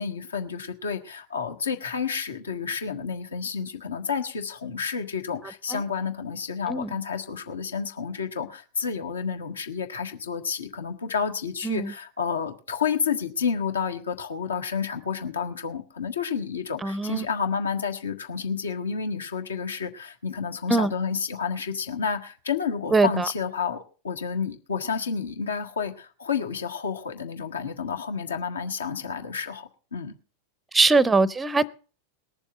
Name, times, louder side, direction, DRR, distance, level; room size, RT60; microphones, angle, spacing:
voice 1, 0.0-30.1, left 6 dB, 70° left, 1.5 m, -30 dB
voice 2, 16.8-17.3 20.7-20.9 22.9-23.3 30.7-31.8, right 3 dB, 10° right, 0.6 m, -22 dB
20.0 x 7.1 x 6.7 m
figure-of-eight pair, 90°, 0 cm